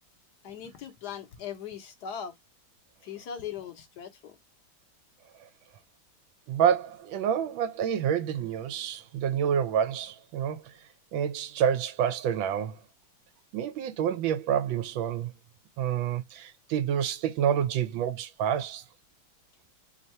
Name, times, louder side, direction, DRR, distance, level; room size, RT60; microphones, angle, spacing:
voice 1, 0.4-2.3 3.0-4.4, left 8 dB, 65° left, 1.2 m, -39 dB
voice 2, 6.5-10.6 11.1-12.8 13.5-15.3 15.8-18.8, right 9 dB, 85° right, 1.4 m, -28 dB
3.6 x 2.6 x 4.2 m
omnidirectional pair, 2.1 m